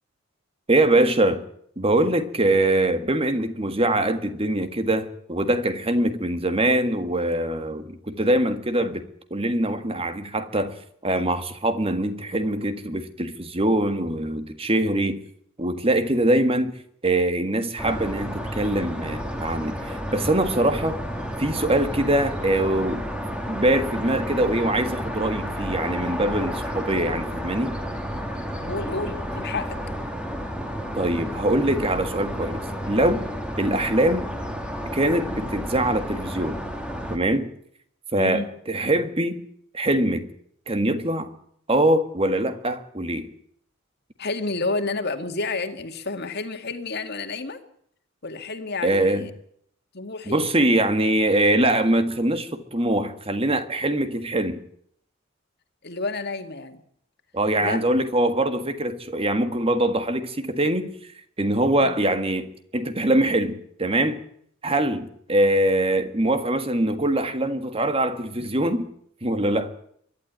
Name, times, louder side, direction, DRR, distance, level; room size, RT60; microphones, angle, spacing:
voice 1, 0.7-1.4 1.8-9.0 9.3-10.7 11.0-15.2 15.6-16.7 17.0-21.0 21.4-23.0 23.5-27.8 30.9-33.2 33.6-34.3 34.9-36.6 37.1-37.5 38.1-39.4 39.7-40.3 40.7-41.3 41.7-43.3 48.8-49.3 50.3-54.6 57.3-60.9 61.4-62.5 62.7-64.2 64.6-68.9 69.2-69.7, right 1 dB, 30° right, 1.7 m, -23 dB
sound 1, 17.8-37.2, equal, 5° right, 2.3 m, -31 dB
voice 2, 28.7-29.8 38.1-38.5 44.2-47.6 48.2-49.3 49.9-50.4 55.8-56.8 57.6-57.8 61.8-62.0, left 3 dB, 50° left, 2.1 m, -30 dB
23.0 x 12.0 x 9.5 m
head